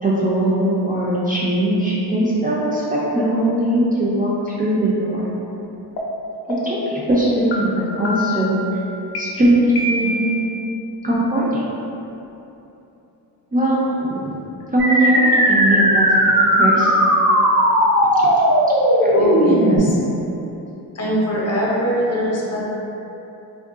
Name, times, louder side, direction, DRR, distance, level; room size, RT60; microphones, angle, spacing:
voice 1, 0.0-5.3 6.5-8.6 9.2-10.3 11.0-11.6 13.5-14.3 14.7-16.9 18.2-18.3 19.0-19.1, right 1 dB, 25° right, -7 dB, 0.3 m, -20 dB
sound 1, 6.0-6.1 6.5-6.9 7.5-7.6 8.0-8.5 9.1-9.2 9.7-10.4, left 1 dB, 80° left, 0.6 m, -25 dB
sound 2, 14.8-19.8, equal, 85° right, 1.2 m, -16 dB
voice 2, 19.1-20.0 20.9-22.6, equal, 40° left, -5 dB, 0.7 m, -22 dB
3.7 x 2.1 x 2.4 m, 2.9 s
cardioid pair, 105°, 39 cm